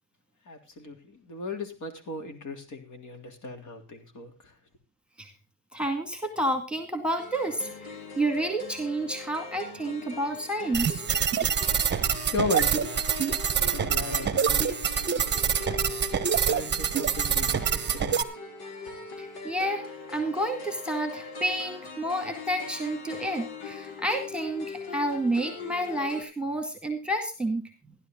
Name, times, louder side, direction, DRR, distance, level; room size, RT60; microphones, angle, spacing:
voice 1, 0.5-4.3 12.3-12.9 13.7-14.7 16.3-18.2, left 3 dB, 40° left, 3.4 m, -35 dB
voice 2, 5.7-11.0 19.2-19.8 20.1-28.0, right 1 dB, ahead, 2.2 m, -30 dB
sound 1, 7.2-26.2, left 4 dB, 60° left, 5.0 m, -41 dB
sound 2, 10.7-18.2, right 7 dB, 25° right, 1.2 m, -26 dB
15.5 x 11.5 x 3.8 m
cardioid pair, 125°, 42 cm